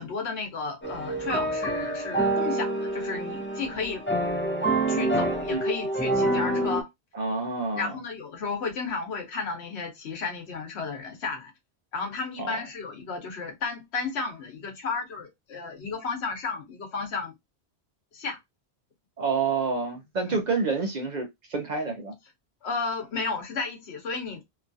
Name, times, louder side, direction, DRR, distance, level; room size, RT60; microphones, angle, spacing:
voice 1, 0.0-4.0 4.9-6.9 7.7-11.5 11.9-17.3 18.1-18.4 20.2-20.4 22.6-24.4, left 4 dB, 80° left, 1.1 m, -33 dB
sound 1, 0.8-6.8, right 1 dB, 15° left, 0.6 m, -27 dB
voice 2, 7.1-7.9 12.4-12.5 19.2-22.1, right 4 dB, 50° right, 0.6 m, -28 dB
2.9 x 2.3 x 2.5 m
omnidirectional pair, 1.1 m